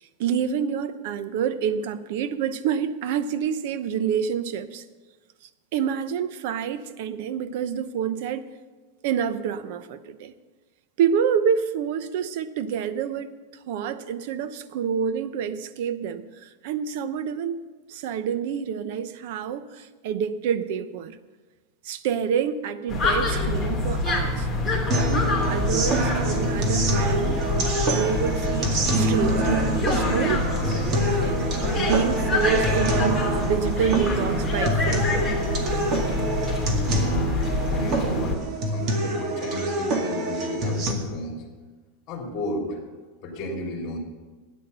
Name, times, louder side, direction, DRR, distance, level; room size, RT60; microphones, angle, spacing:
voice 1, 0.2-4.8 5.7-8.4 9.0-10.3 11.0-13.3 13.7-17.6 17.9-21.2 21.8-24.5 25.1-27.4 27.9-30.5 31.0-31.4 31.8-35.0, right 8 dB, 60° right, 13 dB, 0.8 m, -27 dB
sound 1, 22.9-38.4, left 2 dB, 5° left, 3.1 m, -26 dB
sound 2, 24.9-40.9, right 2 dB, 35° right, 2.0 m, -26 dB
voice 2, 36.9-38.4 38.6-41.4 42.1-42.9 43.2-44.0, left 1 dB, 35° left, 0 dB, 3.1 m, -33 dB
13.0 x 9.6 x 6.8 m, 1.3 s
supercardioid pair, 150°, 0 cm